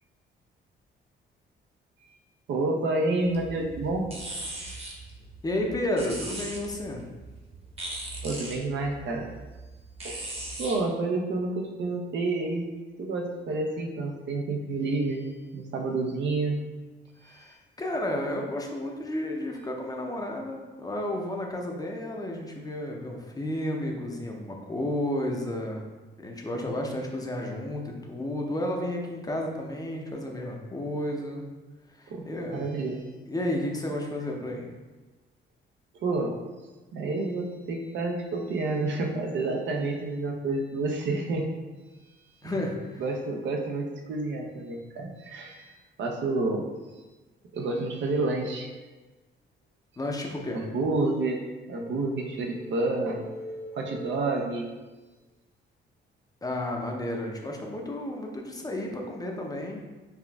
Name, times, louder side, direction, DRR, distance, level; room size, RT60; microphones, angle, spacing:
voice 1, 2.5-4.1 4.4-4.9 8.2-9.3 10.0-10.2 10.6-12.7 13.0-16.6 17.2-17.6 32.1-32.2 32.5-33.0 36.0-36.4 36.9-41.5 42.4-42.5 43.0-45.7 46.0-46.6 47.5-48.7 50.5-51.4 51.7-53.2 53.7-54.7, right 2 dB, 65° right, 2 dB, 0.6 m, -29 dB
sound 1, 3.2-10.8, right 2 dB, 30° right, 1.0 m, -40 dB
voice 2, 5.4-7.0 17.2-25.8 26.2-31.4 32.0-32.7 33.3-34.7 42.4-43.0 50.0-50.6 56.4-59.9, left 1 dB, 20° left, 0 dB, 0.6 m, -32 dB
sound 2, 51.8-54.9, equal, 70° left, 1.4 m, -43 dB
5.7 x 2.4 x 2.3 m, 1.2 s
cardioid pair, 90°, 20 cm